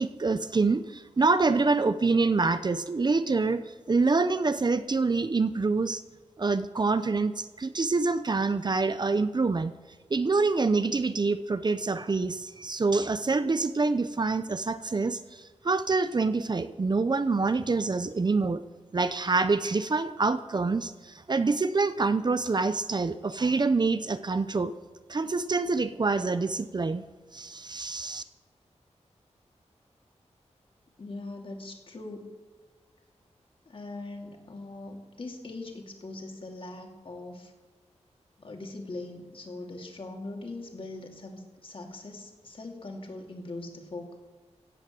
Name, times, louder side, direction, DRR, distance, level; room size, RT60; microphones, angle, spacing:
voice 1, 0.0-3.6 3.9-6.0 6.4-9.7 10.1-18.6 18.9-24.7 25.1-27.1 27.3-28.2, right 3 dB, 40° right, 12 dB, 0.7 m, -26 dB
voice 2, 31.0-32.3 33.7-37.5 38.4-44.2, left 2 dB, 50° left, 2 dB, 2.9 m, -41 dB
16.0 x 9.3 x 7.7 m, 1.4 s
wide cardioid pair, 130°, 12 cm